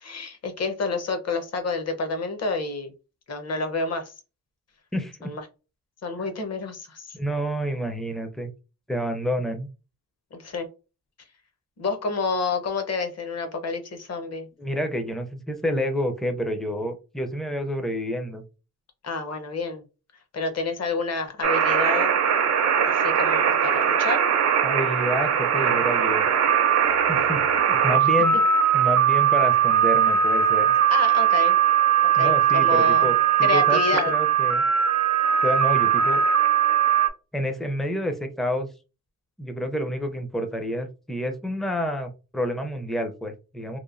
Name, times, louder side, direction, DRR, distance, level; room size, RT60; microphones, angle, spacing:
voice 1, 0.0-2.9 3.3-4.1 5.2-5.4 6.0-7.2 10.3-10.7 11.8-14.5 19.0-19.8 20.3-22.1 22.9-24.2 30.9-31.6 32.2-33.1 33.4-34.1, left 3 dB, 45° left, 7 dB, 0.7 m, -29 dB
voice 2, 4.9-5.3 6.2-6.3 7.1-8.5 8.9-9.7 14.6-18.4 24.6-26.3 27.1-27.4 27.7-28.4 28.7-30.7 32.2-33.8 34.1-34.6 35.4-36.2 37.3-38.7 39.4-43.8, equal, ahead, 6 dB, 0.4 m, -28 dB
sound 1, 21.4-37.1, right 8 dB, 50° right, 0.5 m, -20 dB
3.0 x 2.1 x 2.4 m, 0.31 s
cardioid pair, 120°, 34 cm